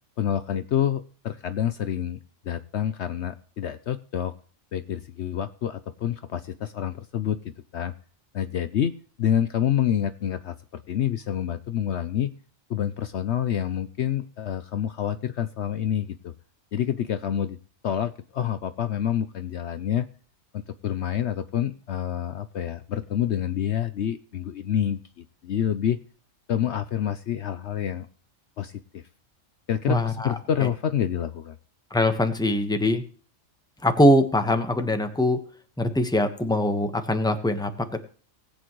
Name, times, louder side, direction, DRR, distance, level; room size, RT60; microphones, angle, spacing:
voice 1, 0.2-2.2 2.4-4.3 4.7-7.9 8.3-8.9 9.2-12.3 12.7-16.3 16.7-17.6 17.8-20.1 20.5-26.0 26.5-28.1 28.6-29.0 29.7-31.5, left 10 dB, 60° left, 11 dB, 0.9 m, -27 dB
voice 2, 29.9-30.7 31.9-33.0 33.8-35.4 35.8-38.0, left 1 dB, 5° left, 7 dB, 1.2 m, -22 dB
19.5 x 8.5 x 3.1 m, 0.42 s
omnidirectional pair, 1.4 m